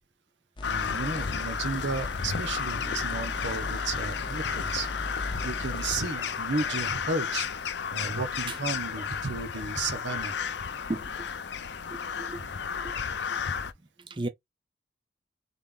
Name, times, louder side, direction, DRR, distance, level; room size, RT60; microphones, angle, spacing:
Crow, 0.6-13.7, left 6 dB, 80° left, 0.6 m, -33 dB
sound 1, 0.6-6.1, left 1 dB, 25° left, 0.8 m, -38 dB
voice 1, 0.6-4.9 5.4-7.5 7.9-10.3 12.3-12.5, right 3 dB, 85° right, 1.1 m, -33 dB
voice 2, 10.9-11.3 11.9-12.4 12.7-12.9 14.1-14.3, right 2 dB, 25° right, 0.6 m, -35 dB
4.0 x 3.5 x 3.4 m
head